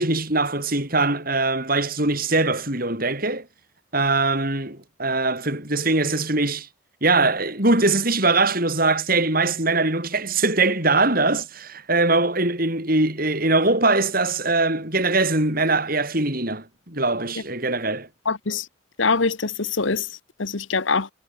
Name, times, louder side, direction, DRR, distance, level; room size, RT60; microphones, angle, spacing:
voice 1, 0.0-3.4 3.9-6.7 7.0-18.1, right 3 dB, 45° right, 7.8 m, -22 dB
voice 2, 18.2-18.7 19.0-20.1 20.4-21.1, left 4 dB, 70° left, 1.3 m, -23 dB
head